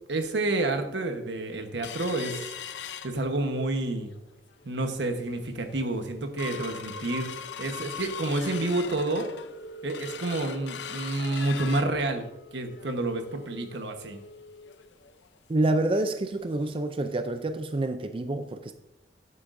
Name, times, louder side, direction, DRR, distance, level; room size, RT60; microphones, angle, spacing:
voice 1, 0.1-2.4 3.0-4.1 4.6-7.3 7.6-9.3 9.8-12.2 12.5-14.2, right 2 dB, 85° right, 6 dB, 1.1 m, -29 dB
sound 1, 1.8-3.7 4.1-4.2 4.5-4.9 5.4-5.5 5.8-16.3 16.7-16.8 17.1-17.3 17.8-17.9, left 6 dB, 85° left, 0.6 m, -41 dB
voice 2, 15.5-18.7, right 2 dB, 30° right, 8 dB, 0.4 m, -27 dB
12.0 x 8.3 x 2.6 m, 0.93 s
head